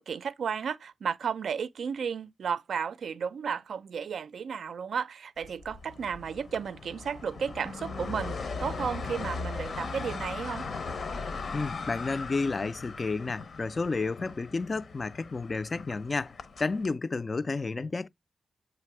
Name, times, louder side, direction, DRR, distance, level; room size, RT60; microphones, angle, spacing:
voice 1, 0.0-10.7, right 6 dB, 70° right, 0.4 m, -33 dB
sound 1, 5.4-16.9, left 4 dB, 55° left, 0.8 m, -39 dB
voice 2, 11.5-18.1, left 3 dB, 30° left, 0.3 m, -31 dB
7.6 x 3.3 x 4.7 m
wide cardioid pair, 135°, 0 cm